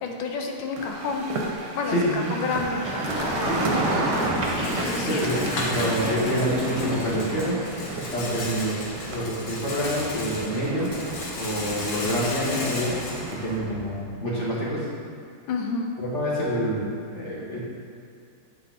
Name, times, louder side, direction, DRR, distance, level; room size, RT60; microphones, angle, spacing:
voice 1, 0.0-1.2 1.7-2.8 3.1-3.8 4.6-5.3 15.5-15.9, left 4 dB, 75° left, 2 dB, 1.5 m, -30 dB
sound 1, 0.8-13.6, right 2 dB, 65° right, 1.3 m, -33 dB
voice 2, 1.9-2.3 3.5-3.9 5.2-7.6 7.9-10.9 11.4-13.0 13.3-14.9 16.0-17.6, equal, 35° left, -7 dB, 1.7 m, -27 dB
Run, 2.8-8.7 10.5-12.0, equal, 20° right, 1.4 m, -33 dB
Rattle, 3.0-14.1, left 2 dB, 60° left, 0.9 m, -36 dB
8.6 x 4.0 x 3.8 m, 2.4 s
omnidirectional pair, 2.3 m